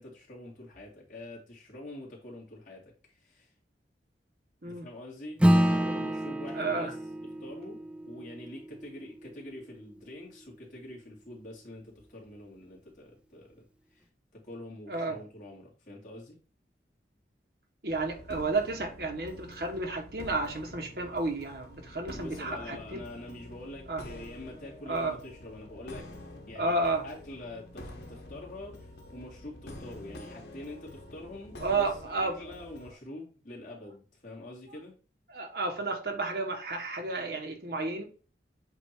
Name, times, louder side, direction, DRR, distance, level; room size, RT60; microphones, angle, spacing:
voice 1, 0.0-3.5 4.6-6.9 7.4-13.7 13.9-14.1 14.3-16.4 21.9-26.1 26.5-35.0, left 1 dB, 45° left, 2.5 m, -45 dB
Acoustic guitar / Strum, 5.4-10.2, equal, 5° right, 0.4 m, -29 dB
voice 2, 6.5-6.9 14.9-15.2 17.8-23.0 23.9-24.0 24.9-25.2 26.5-27.1 31.6-32.4 35.3-38.0, right 3 dB, 60° right, 1.3 m, -32 dB
sound 1, 17.9-32.9, left 1 dB, 75° left, 1.3 m, -47 dB
8.0 x 2.8 x 4.5 m
head